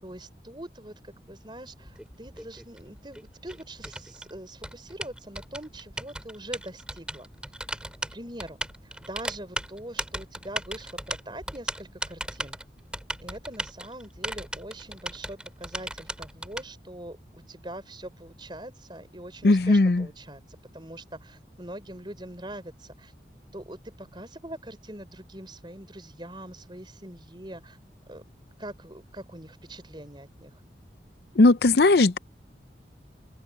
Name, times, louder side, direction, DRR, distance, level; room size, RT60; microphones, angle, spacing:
voice 1, 0.0-7.3 8.1-8.6 8.8-12.6 13.2-20.4 20.7-23.1 23.5-27.8 28.1-28.2 28.6-30.6, right 1 dB, 25° right, 4.8 m, -43 dB
Typing, 1.8-16.6, right 1 dB, 5° right, 5.0 m, -36 dB
voice 2, 19.4-20.1 31.4-32.2, left 2 dB, 65° left, 0.6 m, -18 dB
open air
head